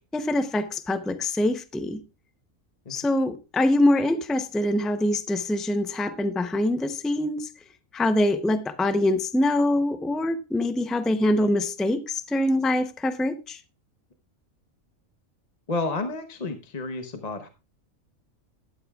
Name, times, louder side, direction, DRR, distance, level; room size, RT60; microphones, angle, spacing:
voice 1, 0.1-2.0 2.9-7.5 7.9-13.6, left 1 dB, ahead, 0.4 m, -24 dB
voice 2, 15.7-17.5, left 3 dB, 35° left, 0.9 m, -31 dB
12.5 x 12.0 x 2.4 m
omnidirectional pair, 1.5 m